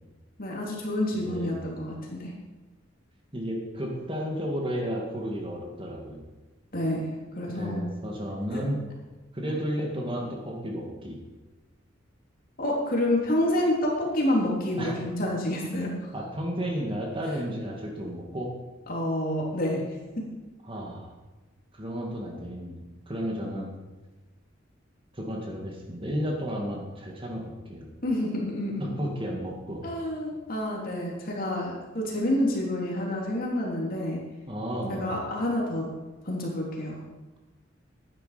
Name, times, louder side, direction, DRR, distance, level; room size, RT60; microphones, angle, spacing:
voice 1, 0.4-2.3 6.7-7.8 8.5-8.7 9.4-9.5 12.6-15.9 18.9-19.8 20.2-20.3 28.0-28.9 29.8-34.2 34.9-35.9 36.2-37.0, left 1 dB, 50° left, -2 dB, 3.1 m, -28 dB
voice 2, 1.1-1.6 3.3-6.2 7.5-8.9 9.3-11.2 14.8-14.9 16.1-18.5 20.7-21.1 21.7-23.7 25.1-27.9 28.8-29.8 34.5-35.1, equal, 25° right, 0 dB, 2.0 m, -33 dB
12.0 x 9.9 x 5.1 m, 1.2 s
head